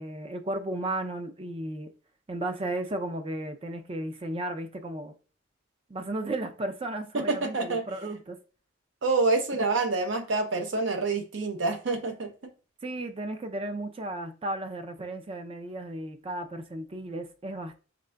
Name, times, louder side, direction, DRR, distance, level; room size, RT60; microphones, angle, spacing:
voice 1, 0.0-1.9 2.3-5.1 5.9-8.4 12.8-17.8, right 1 dB, 30° right, 0.4 m, -34 dB
voice 2, 7.1-7.8 9.0-12.5, right 3 dB, 65° right, 0.7 m, -27 dB
3.7 x 3.7 x 2.2 m
head